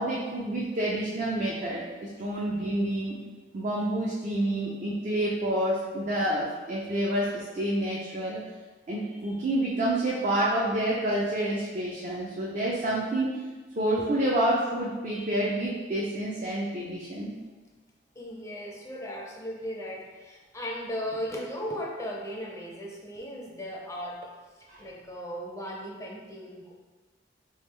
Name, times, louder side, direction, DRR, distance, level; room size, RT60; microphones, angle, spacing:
voice 1, 0.0-1.8 2.2-3.2 3.5-8.4 8.9-13.5 13.8-17.3 24.7-24.8, right 1 dB, 45° right, -5 dB, 0.5 m, -28 dB
voice 2, 18.2-26.7, equal, 15° left, -2 dB, 0.5 m, -37 dB
3.5 x 3.0 x 3.2 m, 1.3 s
head